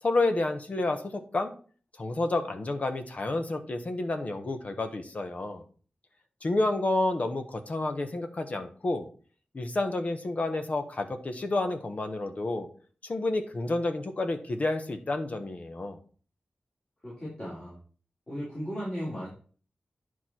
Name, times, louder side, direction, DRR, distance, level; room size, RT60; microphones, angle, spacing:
voice 1, 0.0-1.5 2.0-5.6 6.4-9.1 9.5-12.7 13.0-16.0, left 2 dB, 45° left, 7 dB, 1.1 m, -30 dB
voice 2, 17.0-17.8 18.3-19.3, equal, 30° left, -8 dB, 4.0 m, -36 dB
10.0 x 4.7 x 4.4 m, 0.42 s
wide cardioid pair, 100°, 3 cm